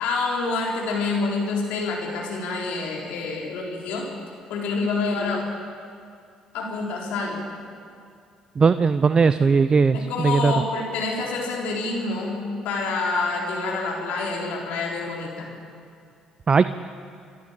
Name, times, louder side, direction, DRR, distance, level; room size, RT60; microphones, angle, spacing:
voice 1, 0.0-4.1 4.5-5.4 6.5-7.4 9.9-15.5, left 3 dB, 70° left, -1 dB, 4.1 m, -27 dB
voice 2, 8.6-10.5 16.5-16.6, right 5 dB, 35° right, 13 dB, 0.6 m, -18 dB
25.5 x 11.5 x 8.9 m, 2.3 s
hypercardioid pair, 50°, 2 cm